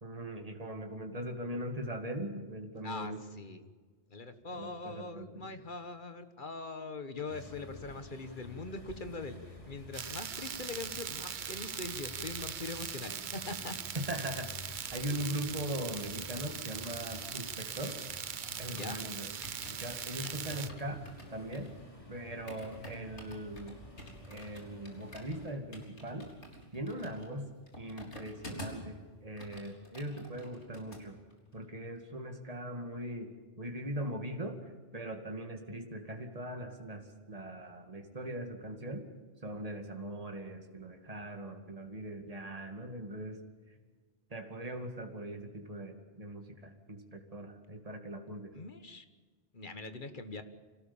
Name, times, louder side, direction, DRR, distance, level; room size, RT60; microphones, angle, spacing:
voice 1, 0.0-3.2 4.5-5.3 13.9-18.0 18.6-19.3 19.7-21.0 21.3-21.7 22.1-23.8 24.3-26.3 26.7-27.5 27.8-31.2 31.5-33.3 33.6-39.1 39.4-43.4 44.3-48.5, right 1 dB, 30° right, 4 dB, 2.4 m, -40 dB
voice 2, 2.8-3.6 4.1-13.7 18.7-19.1 48.5-49.1 49.5-50.4, left 3 dB, 45° left, 9 dB, 1.6 m, -42 dB
sound 1, 7.3-25.5, left 2 dB, 30° left, 3.4 m, -51 dB
sound 2, 9.9-20.7, right 7 dB, 50° right, 0.8 m, -41 dB
sound 3, 16.8-19.1 19.4-28.9 29.2-31.0 31.3-31.6, equal, 75° left, 4.3 m, -50 dB
26.5 x 18.0 x 7.2 m, 1.5 s
omnidirectional pair, 1.2 m